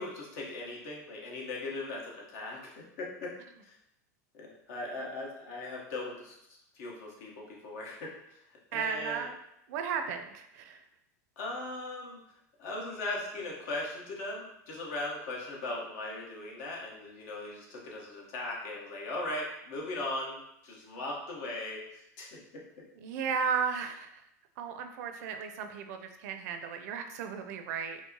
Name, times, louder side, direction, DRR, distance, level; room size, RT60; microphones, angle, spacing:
voice 1, 0.0-3.4 3.6-3.7 4.3-6.4 6.7-8.2 8.7-9.3 11.4-12.2 12.6-22.6, left 2 dB, 65° left, -2 dB, 1.1 m, -39 dB
voice 2, 8.7-9.4 9.7-10.8 23.0-24.1 24.6-28.0, right 6 dB, 65° right, 6 dB, 0.5 m, -34 dB
4.5 x 2.1 x 2.8 m, 0.79 s
hypercardioid pair, 110°, 9 cm